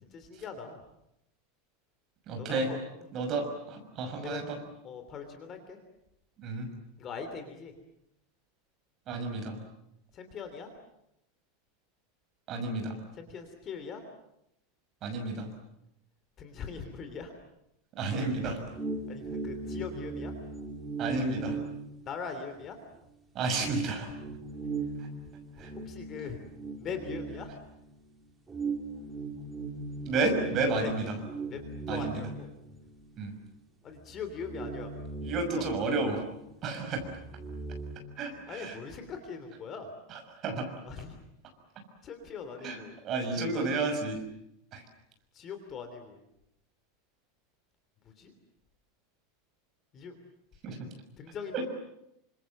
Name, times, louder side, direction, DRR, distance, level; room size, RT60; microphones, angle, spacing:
voice 1, 0.1-0.8 2.4-2.8 4.2-4.4 4.8-5.8 7.0-7.7 10.1-10.7 13.2-14.0 16.4-17.3 18.4-18.5 19.1-20.3 22.0-22.8 25.8-26.4 26.8-27.5 30.8-30.9 31.5-31.6 31.9-32.5 33.8-35.1 35.5-35.7 38.3-39.9 40.8-41.2 42.0-42.9 43.3-43.7 45.3-46.2 48.0-48.3 49.9-50.2 51.2-51.7, left 6 dB, 25° left, 7 dB, 3.1 m, -41 dB
voice 2, 2.3-2.7 3.1-4.6 6.4-6.7 9.1-9.6 12.5-13.0 15.0-15.5 18.0-18.6 21.0-21.6 23.3-24.1 25.0-25.1 25.6-25.7 30.1-31.2 31.9-32.2 33.2-33.3 35.2-36.2 36.6-37.0 38.2-38.8 40.1-40.7 42.6-44.2 44.7-44.8 50.6-50.9 51.5-51.6, right 3 dB, 25° right, 4 dB, 6.0 m, -31 dB
sound 1, 18.3-22.7 23.0-23.1 23.6-28.0 28.5-33.2 33.5-33.6 34.0-36.5 36.7-38.0, right 4 dB, 10° right, 2.7 m, -39 dB
29.0 x 26.0 x 7.7 m, 0.81 s
supercardioid pair, 175°, 0 cm